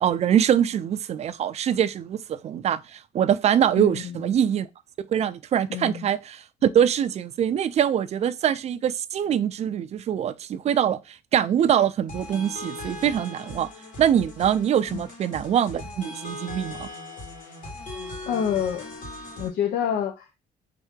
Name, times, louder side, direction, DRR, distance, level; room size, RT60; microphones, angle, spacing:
voice 1, 0.0-4.7 5.1-6.4 6.7-13.7 14.0-16.9, right 9 dB, 40° right, 0.4 m, -23 dB
voice 2, 3.8-4.2 5.7-6.1 14.9-15.0 18.3-18.8 19.4-20.4, left 8 dB, 70° left, 0.6 m, -27 dB
sound 1, 12.1-19.5, left 1 dB, 50° left, 1.4 m, -39 dB
3.7 x 2.8 x 3.6 m
cardioid pair, 110°, 17 cm